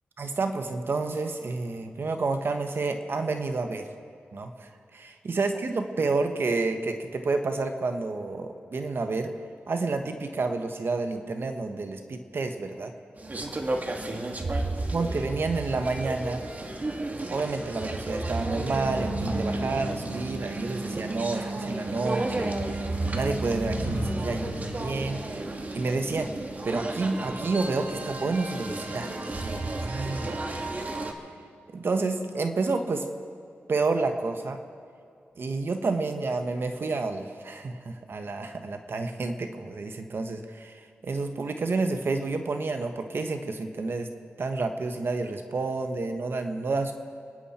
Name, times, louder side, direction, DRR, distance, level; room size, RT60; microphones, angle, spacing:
voice 1, 0.2-3.9 4.3-9.3 9.7-12.9 14.9-16.4 17.1-22.5 23.1-25.3 25.7-26.3 26.6-29.1 29.3-30.4 31.7-33.1 33.7-34.6 35.4-44.1 44.4-46.9, right 3 dB, 60° right, 6 dB, 1.2 m, -29 dB
sound 1, 13.2-31.1, right 2 dB, 40° right, 1.8 m, -33 dB
sound 2, 18.4-29.3, right 2 dB, 85° right, 4.2 m, -37 dB
29.5 x 10.5 x 4.3 m, 2.5 s
cardioid pair, 55°, 4 cm